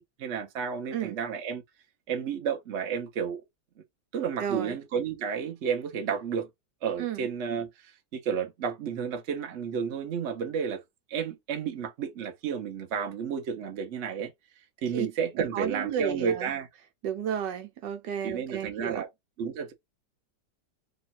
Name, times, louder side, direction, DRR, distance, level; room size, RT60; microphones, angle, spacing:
voice 1, 0.0-1.6 2.1-3.4 4.1-6.5 6.8-7.7 8.1-10.8 11.1-14.3 14.8-16.7 18.2-19.1 19.4-19.7, right 7 dB, 50° right, 0.9 m, -31 dB
voice 2, 4.4-4.8 7.0-7.3 14.9-15.1 15.5-16.5 17.0-19.0, right 8 dB, 85° right, 1.4 m, -32 dB
3.1 x 2.3 x 4.1 m
omnidirectional pair, 1.9 m